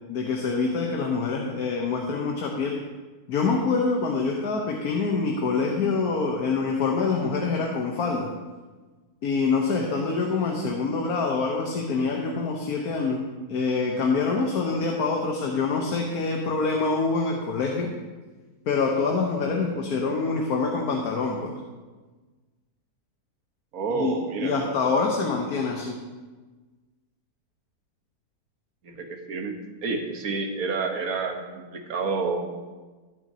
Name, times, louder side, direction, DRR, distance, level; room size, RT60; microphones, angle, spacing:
voice 1, 0.0-2.8 3.3-8.3 9.2-13.2 13.5-17.9 18.6-21.5 23.9-24.2 24.4-26.0, left 4 dB, 75° left, 1 dB, 1.5 m, -25 dB
voice 2, 23.7-24.7 28.8-32.6, right 4 dB, 65° right, 4 dB, 1.6 m, -29 dB
15.5 x 9.1 x 2.8 m, 1.3 s
omnidirectional pair, 1.6 m